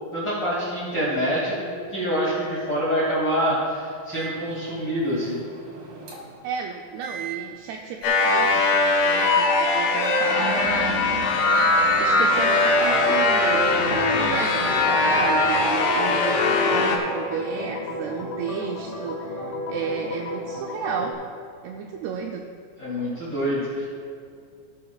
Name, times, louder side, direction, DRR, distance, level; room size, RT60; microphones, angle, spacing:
voice 1, 0.1-5.4 22.8-23.9, equal, 35° left, -8 dB, 1.8 m, -26 dB
Microwave oven, 4.1-6.4 7.0-7.3 8.0-8.3 9.0-9.4 10.0-10.3, right 7 dB, 55° right, 1.8 m, -38 dB
voice 2, 6.4-11.0 11.6-11.7 12.0-13.6 13.9-21.2 21.6-22.4, right 6 dB, 85° right, 2 dB, 2.3 m, -32 dB
sound 1, 8.0-17.0, left 3 dB, 85° left, 3.3 m, -20 dB
Organ, 11.8-21.1, equal, 70° left, 1.5 m, -33 dB
17.0 x 9.2 x 2.3 m, 2.3 s
omnidirectional pair, 5.1 m